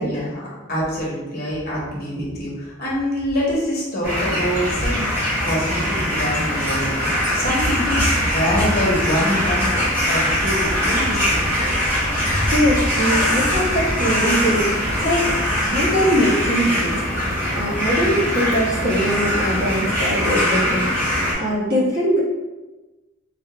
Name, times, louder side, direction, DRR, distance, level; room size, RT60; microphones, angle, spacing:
voice 1, 0.0-5.0 5.4-11.8, equal, 50° left, -5 dB, 1.0 m, -25 dB
sound 1, 4.0-21.3, equal, 10° right, 1.3 m, -22 dB
voice 2, 12.4-15.3 15.6-17.0 17.5-22.2, equal, 50° right, -8 dB, 1.2 m, -22 dB
3.3 x 2.4 x 3.0 m, 1.1 s
head